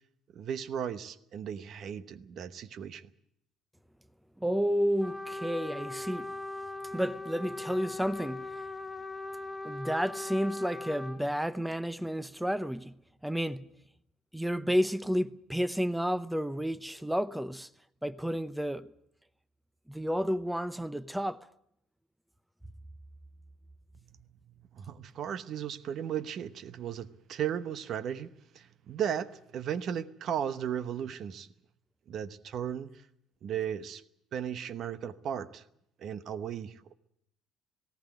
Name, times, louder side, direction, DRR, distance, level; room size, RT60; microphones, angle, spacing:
voice 1, 0.3-3.1 24.7-31.5 32.1-32.9 33.4-34.0 34.3-35.6 36.0-36.9, right 9 dB, 55° right, 0.9 m, -36 dB
voice 2, 4.4-6.3 6.9-8.6 9.6-13.0 13.2-13.7 14.3-17.7 18.0-18.9 19.9-21.5, equal, 5° right, 0.8 m, -31 dB
Trumpet, 5.0-11.2, left 2 dB, 15° left, 2.2 m, -40 dB
18.5 x 17.5 x 9.1 m
hypercardioid pair, 60°, 0 cm